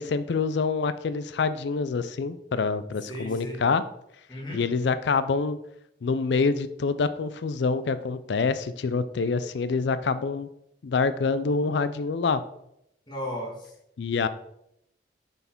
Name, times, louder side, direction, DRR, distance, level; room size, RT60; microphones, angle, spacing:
voice 1, 0.0-3.8 4.5-5.6 6.0-10.5 10.8-12.4 14.0-14.3, left 4 dB, 70° left, 14 dB, 0.4 m, -26 dB
voice 2, 3.1-3.6 4.3-4.6 13.1-13.7, equal, 25° left, -2 dB, 1.7 m, -35 dB
6.6 x 4.4 x 4.4 m, 0.78 s
head